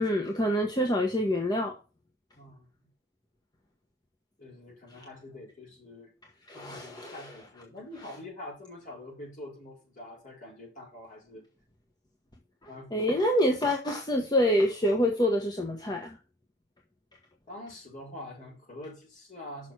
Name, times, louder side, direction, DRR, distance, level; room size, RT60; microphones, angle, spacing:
voice 1, 0.0-1.7 6.5-7.1 12.9-16.2, left 1 dB, 25° left, 1 dB, 1.2 m, -26 dB
voice 2, 2.3-2.9 4.4-6.1 6.5-11.5 12.7-13.0 17.5-19.7, left 1 dB, 50° left, -2 dB, 4.9 m, -45 dB
6.5 x 6.1 x 6.0 m, 0.33 s
head